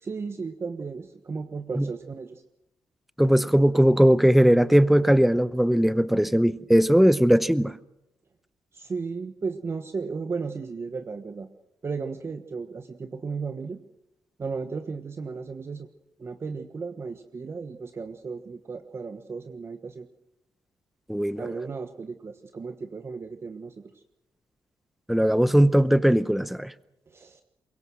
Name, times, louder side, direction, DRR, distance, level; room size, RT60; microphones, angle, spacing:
voice 1, 0.0-2.4 8.7-11.5 11.8-13.8 14.4-15.9 16.2-20.1 21.4-23.7 27.1-27.4, right 4 dB, 35° right, 7 dB, 1.3 m, -35 dB
voice 2, 3.2-7.7 21.1-21.4 25.1-26.7, equal, ahead, 15 dB, 0.8 m, -19 dB
23.5 x 22.5 x 6.4 m, 0.89 s
cardioid pair, 120°, 7 cm